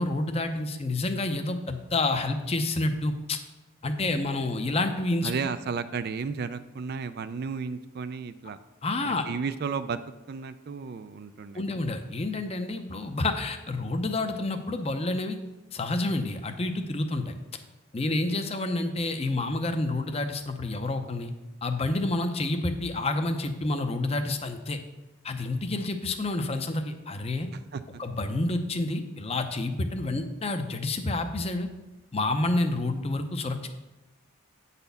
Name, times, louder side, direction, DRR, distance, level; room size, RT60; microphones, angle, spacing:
voice 1, 0.0-3.4 3.8-5.3 8.8-9.3 11.5-15.4 15.7-17.3 17.9-21.3 21.6-24.8 25.2-27.5 28.0-31.7 32.1-33.7, left 2 dB, 25° left, 7 dB, 0.6 m, -29 dB
voice 2, 5.2-8.6 9.1-10.0 10.3-11.8 27.5-28.0, right 5 dB, 45° right, 12 dB, 0.3 m, -33 dB
8.9 x 4.2 x 6.8 m, 1.1 s
head